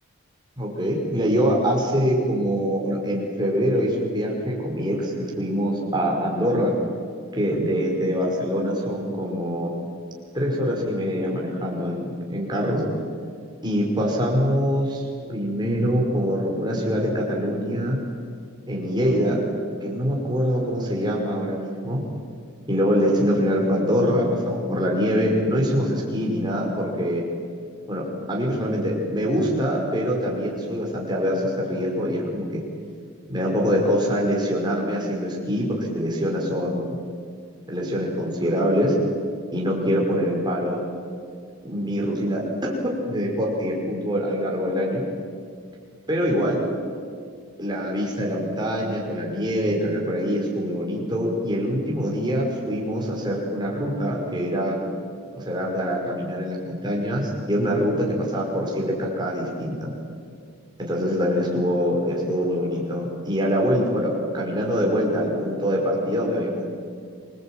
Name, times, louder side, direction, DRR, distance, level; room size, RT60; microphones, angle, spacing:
voice 1, 0.6-6.7 7.3-9.7 10.3-12.8 13.6-15.0 15.3-18.0 18.7-19.4 19.8-22.0 22.7-27.2 27.9-32.6 33.3-36.9 37.7-39.0 39.5-40.8 41.6-45.0 46.1-46.6 47.6-54.8 55.4-59.9 60.8-66.6, equal, 20° right, -2 dB, 5.4 m, -24 dB
26.5 x 21.0 x 9.1 m, 2.2 s
head